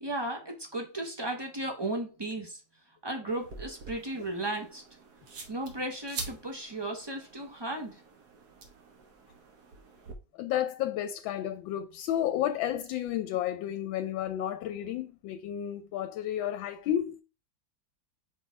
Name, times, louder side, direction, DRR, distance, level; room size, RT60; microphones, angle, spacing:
voice 1, 0.0-2.6 3.0-4.8 5.5-8.0, right 1 dB, 40° right, 0.3 m, -35 dB
sound 1, 3.3-10.1, right 4 dB, 60° right, 1.7 m, -46 dB
voice 2, 10.3-17.2, left 11 dB, 85° left, 1.3 m, -32 dB
4.9 x 4.2 x 4.6 m
omnidirectional pair, 2.1 m